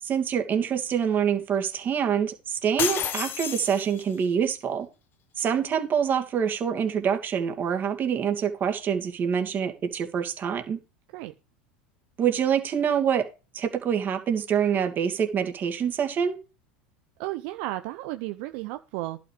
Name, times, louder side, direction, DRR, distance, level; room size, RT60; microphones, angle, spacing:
voice 1, 0.0-4.9 5.4-10.8 12.2-13.3 13.5-16.4, right 8 dB, 40° right, 5 dB, 2.5 m, -26 dB
sound 1, 2.8-4.2, left 9 dB, 40° left, 1.1 m, -30 dB
voice 2, 17.2-19.2, right 17 dB, 65° right, 9 dB, 0.7 m, -33 dB
11.5 x 6.1 x 5.1 m, 0.30 s
hypercardioid pair, 90°, 5 cm